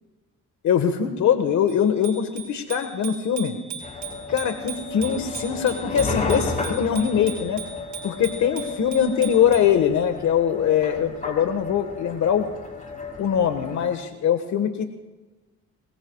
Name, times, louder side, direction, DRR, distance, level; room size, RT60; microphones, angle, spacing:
voice 1, 0.6-3.5 4.3-7.6 8.0-12.5 13.2-14.8, left 8 dB, 70° left, 7 dB, 1.5 m, -22 dB
Bicycle bell, 1.7-9.8, right 7 dB, 70° right, 6.4 m, -39 dB
sound 1, 3.8-13.9, left 3 dB, 25° left, 4.5 m, -33 dB
25.5 x 22.5 x 2.4 m, 1.2 s
cardioid pair, 90°, 30 cm